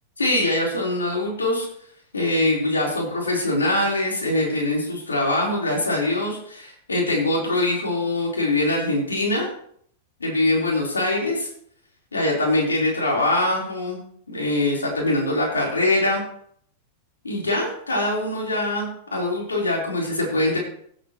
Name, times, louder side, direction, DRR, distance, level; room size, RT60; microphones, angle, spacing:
voice 1, 0.2-1.7 2.1-9.5 10.2-11.5 12.1-14.0 14.3-16.2 17.2-20.6, left 1 dB, 85° left, -3 dB, 3.9 m, -23 dB
16.5 x 8.2 x 3.0 m, 0.64 s
hypercardioid pair, 95°, 0 cm